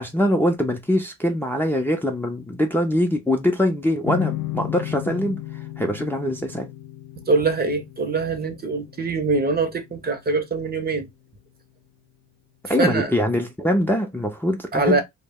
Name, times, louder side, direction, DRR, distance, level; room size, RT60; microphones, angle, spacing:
voice 1, 0.0-6.7 12.7-15.0, left 1 dB, 5° left, 0.5 m, -23 dB
sound 1, 4.0-11.3, left 15 dB, 70° left, 0.5 m, -35 dB
voice 2, 7.2-11.1 12.8-13.1 14.7-15.0, right 3 dB, 30° right, 0.7 m, -23 dB
2.1 x 2.1 x 3.5 m
cardioid pair, 90°, 30 cm